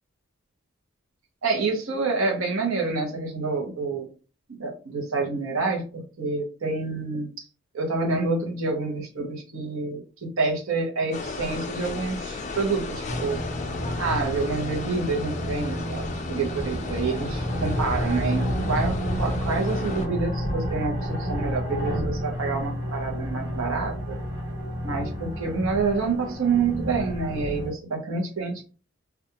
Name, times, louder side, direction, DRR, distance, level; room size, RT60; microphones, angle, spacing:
voice 1, 1.4-4.1 4.5-7.3 7.7-13.4 14.0-16.0 16.3-24.2 24.8-28.7, right 4 dB, 80° right, 1 dB, 0.8 m, -28 dB
sound 1, 11.1-20.1, left 3 dB, 35° left, 0.4 m, -35 dB
sound 2, 13.1-27.7, equal, 55° right, 1.1 m, -30 dB
2.4 x 2.3 x 2.8 m, 0.35 s
head